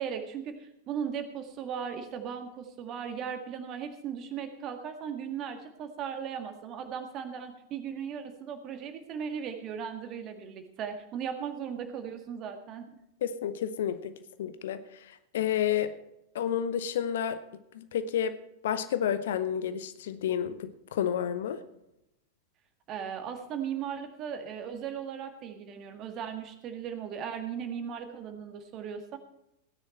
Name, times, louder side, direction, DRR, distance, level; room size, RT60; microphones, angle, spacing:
voice 1, 0.0-12.9 22.9-29.2, right 7 dB, 35° right, 7 dB, 1.8 m, -37 dB
voice 2, 13.2-14.1 14.4-15.9 16.3-17.4 17.7-18.4 18.6-21.6, left 9 dB, 60° left, 12 dB, 0.9 m, -30 dB
17.0 x 9.8 x 4.5 m, 0.85 s
figure-of-eight pair, 90°, 0 cm